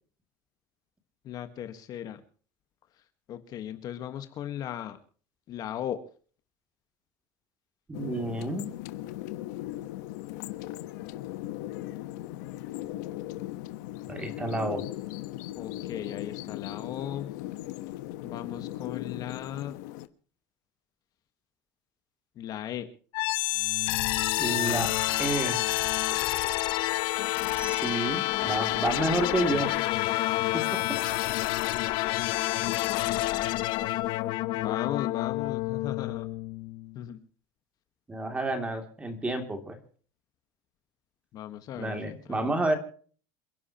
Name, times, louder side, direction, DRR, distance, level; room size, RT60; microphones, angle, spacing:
voice 1, 1.2-2.2 3.3-5.0 5.5-6.0 15.5-17.3 18.2-19.8 22.3-22.9 34.5-36.3 36.9-37.2 41.3-42.4, left 11 dB, 40° left, 9 dB, 1.5 m, -37 dB
sound 1, 7.9-20.1, left 15 dB, 80° left, 1.2 m, -38 dB
voice 2, 7.9-8.7 14.1-14.9 24.4-24.9 25.2-25.6 27.5-29.7 30.5-31.0 38.1-39.8 41.8-42.8, right 2 dB, 10° right, 6 dB, 2.8 m, -30 dB
sound 2, 23.1-37.0, left 18 dB, 60° left, 1.0 m, -28 dB
28.0 x 11.0 x 3.0 m, 0.43 s
cardioid pair, 145°, 10 cm